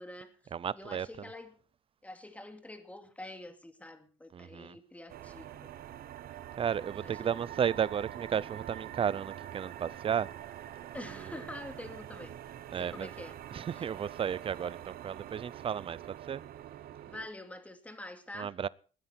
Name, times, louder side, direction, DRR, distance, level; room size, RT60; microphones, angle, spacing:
voice 1, 0.0-0.3 0.7-1.6 2.0-5.7 7.0-7.5 10.9-12.3 12.8-13.4 13.7-13.8 17.0-18.5, left 1 dB, 10° left, 2.3 m, -46 dB
voice 2, 0.5-1.3 4.3-4.8 6.6-10.3 12.7-13.1 13.5-16.4 18.4-18.7, right 8 dB, 35° right, 0.5 m, -33 dB
sound 1, 5.1-17.3, right 11 dB, 65° right, 1.1 m, -45 dB
20.0 x 9.6 x 4.4 m
cardioid pair, 110°, 17 cm